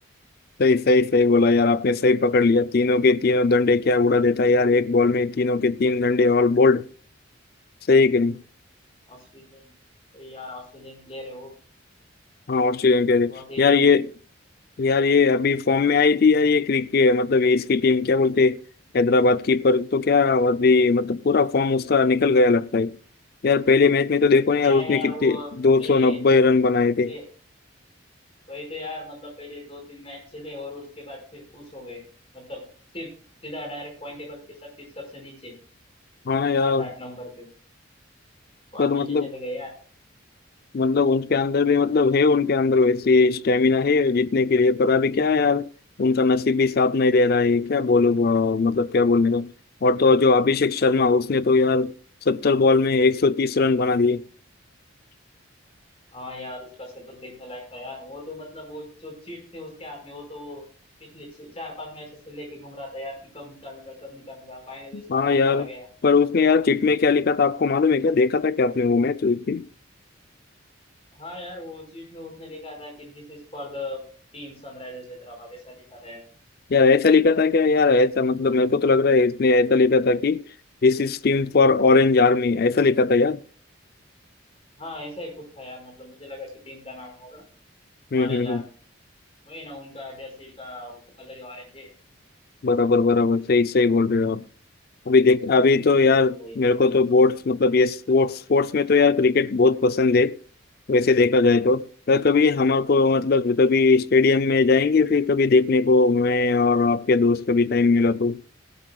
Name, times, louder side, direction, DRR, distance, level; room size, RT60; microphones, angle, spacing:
voice 1, 0.6-6.9 7.9-8.4 12.5-14.1 14.8-18.6 18.9-22.9 23.4-27.1 36.3-36.8 38.8-39.3 40.7-45.7 46.0-49.5 49.8-51.9 52.3-54.2 64.9-65.7 66.0-69.7 76.7-80.4 80.8-83.4 88.1-88.6 92.6-94.4 95.1-100.4 100.9-108.4, left 4 dB, 50° left, 0.4 m, -19 dB
voice 2, 9.1-9.6 10.1-11.5 13.3-13.9 24.6-25.5 25.8-26.2 27.0-27.2 28.5-32.0 32.3-32.6 32.9-33.1 33.4-35.5 36.6-37.5 38.7-39.7 56.1-60.6 61.0-65.9 71.1-74.0 74.3-76.2 84.8-87.4 88.1-88.7 89.4-91.9 96.3-96.7, left 1 dB, 30° left, 5.1 m, -39 dB
19.0 x 12.0 x 2.3 m
head